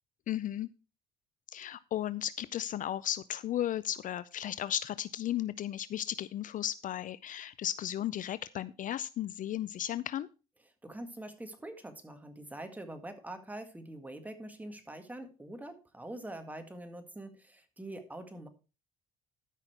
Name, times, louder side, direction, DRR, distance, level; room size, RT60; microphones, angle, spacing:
voice 1, 0.3-0.7 1.5-10.3, left 11 dB, 50° left, 16 dB, 0.5 m, -35 dB
voice 2, 10.8-18.5, right 1 dB, 10° right, 7 dB, 1.9 m, -44 dB
13.0 x 5.8 x 4.6 m, 0.31 s
cardioid pair, 110°, 17 cm